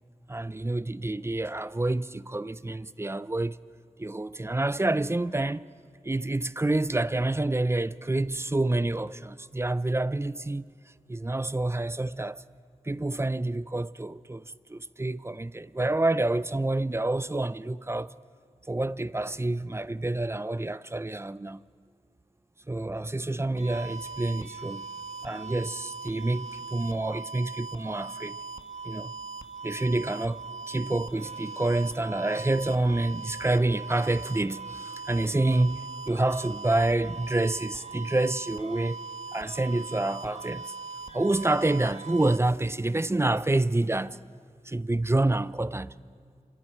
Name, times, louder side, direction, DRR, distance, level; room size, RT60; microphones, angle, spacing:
voice 1, 0.3-3.6 4.0-5.7 6.0-10.7 11.1-12.4 12.8-18.1 18.7-21.6 22.7-24.9 25.2-28.4 28.8-29.1 29.6-30.4 30.7-39.0 39.3-40.7 41.1-44.2 44.6-45.9, right 2 dB, 20° right, 0.6 m, -28 dB
sound 1, 23.6-42.4, right 4 dB, 50° right, 1.4 m, -40 dB
27.5 x 24.5 x 4.5 m
cardioid pair, 50°, 14 cm